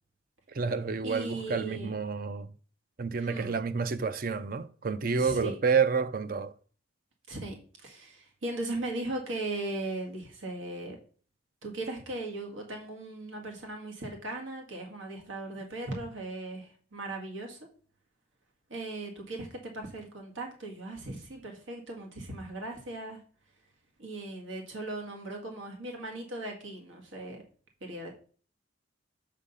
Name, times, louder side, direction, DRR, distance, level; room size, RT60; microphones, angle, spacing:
voice 1, 0.5-2.5 3.0-6.5, right 5 dB, 45° right, 0.5 m, -29 dB
voice 2, 1.0-2.0 3.1-3.5 5.2-5.6 7.3-11.0 11.6-17.6 18.7-23.2 24.0-27.4 27.8-28.1, right 2 dB, 90° right, 2.0 m, -38 dB
7.4 x 5.1 x 5.5 m
head